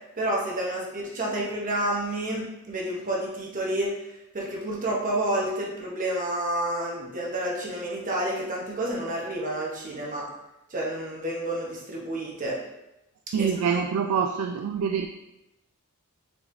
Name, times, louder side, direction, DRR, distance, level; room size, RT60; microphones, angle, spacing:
voice 1, 0.2-3.9 4.3-10.2 10.7-12.6 13.4-13.8, right 1 dB, 35° right, -3 dB, 1.0 m, -29 dB
voice 2, 13.3-15.1, right 7 dB, 80° right, 6 dB, 0.3 m, -25 dB
4.4 x 3.9 x 2.6 m, 0.93 s
head